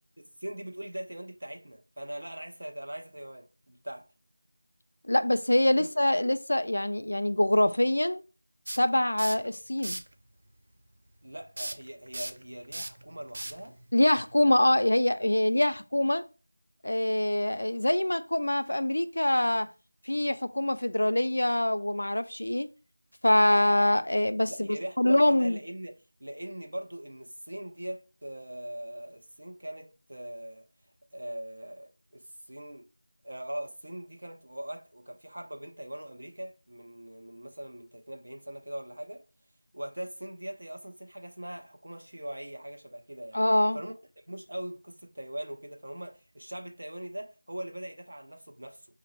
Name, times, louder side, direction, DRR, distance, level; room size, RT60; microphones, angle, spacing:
voice 1, 0.4-4.1 5.8-5.9 11.2-13.8 24.5-25.9 26.2-30.6 31.1-32.9 33.2-39.2 39.7-43.4 43.7-43.9 44.3-48.9, right 1 dB, 70° right, 0.9 m, -41 dB
voice 2, 5.0-8.2 8.8-10.0 13.9-16.2 16.8-19.7 20.1-22.7 23.2-24.7 25.0-25.6 43.3-43.8, left 1 dB, 70° left, 0.3 m, -24 dB
spray bottle, 8.7-9.5 9.8-10.1 11.6-14.6, right 1 dB, 50° right, 0.4 m, -38 dB
5.0 x 2.5 x 3.1 m
figure-of-eight pair, 175°, 0 cm